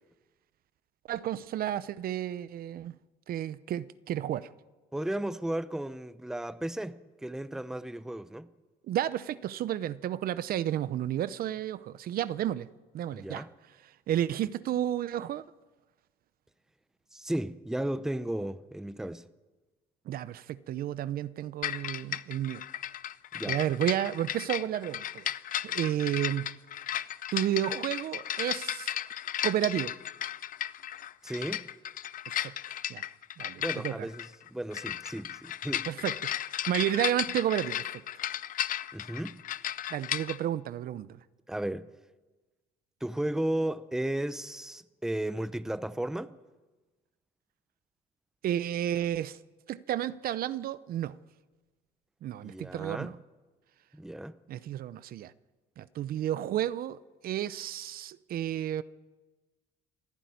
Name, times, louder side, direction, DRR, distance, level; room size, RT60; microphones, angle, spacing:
voice 1, 1.1-2.9 3.3-4.5 8.9-12.7 12.9-13.4 13.8-15.4 20.1-22.6 23.4-25.4 25.6-26.5 27.3-28.9 29.4-29.9 32.3-32.5 32.9-33.1 33.4-34.1 35.9-38.0 39.9-41.2 48.4-49.4 49.7-51.2 52.2-53.2 54.5-55.3 55.8-58.8, right 11 dB, 60° right, 0.7 m, -32 dB
voice 2, 4.9-8.5 13.1-13.5 17.1-19.3 23.3-23.6 31.2-31.7 33.6-35.9 38.9-39.4 41.5-41.9 43.0-46.3 52.4-53.2 53.9-54.4, right 1 dB, 5° right, 0.8 m, -34 dB
sound 1, 21.6-40.4, left 11 dB, 55° left, 0.7 m, -35 dB
28.0 x 10.5 x 9.5 m
cardioid pair, 110°, 17 cm